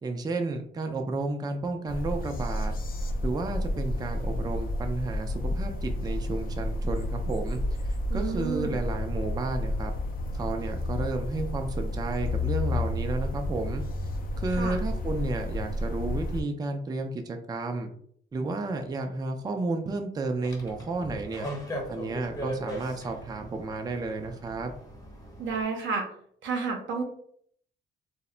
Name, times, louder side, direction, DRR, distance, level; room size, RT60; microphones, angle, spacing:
voice 1, 0.0-2.7 3.2-7.6 8.1-9.9 10.3-13.8 14.4-17.9 18.3-21.5 21.9-24.7, right 3 dB, 20° right, 4 dB, 0.4 m, -32 dB
sound 1, 1.9-16.4, left 1 dB, 50° left, 0.4 m, -31 dB
voice 2, 8.1-8.7 14.5-14.8 25.4-26.1 26.4-27.0, right 4 dB, 75° right, 2 dB, 0.6 m, -31 dB
sound 2, 20.4-25.6, equal, 20° left, 0.7 m, -39 dB
2.1 x 2.0 x 3.6 m, 0.62 s
cardioid pair, 90°, 20 cm